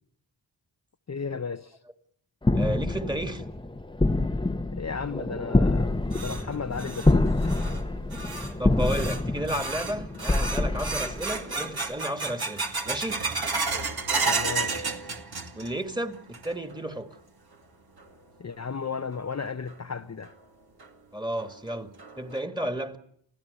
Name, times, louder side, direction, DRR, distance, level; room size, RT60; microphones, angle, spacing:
voice 1, 1.1-1.8 4.7-7.3 14.2-14.7 18.4-20.3, left 5 dB, 35° left, 0.9 m, -34 dB
sound 1, 2.4-11.7, left 2 dB, 10° left, 1.1 m, -26 dB
voice 2, 2.5-3.4 8.1-8.2 8.6-13.2 15.6-17.1 21.1-23.0, right 1 dB, 10° right, 2.3 m, -32 dB
sound 2, 5.7-15.9 16.1-16.8 17.1-17.2 18.0-18.1 19.7-19.8 20.2-20.3 20.8-20.9 21.4-21.5 22.0-22.4, right 4 dB, 55° right, 2.5 m, -32 dB
27.5 x 16.5 x 8.4 m
cardioid pair, 60°, 44 cm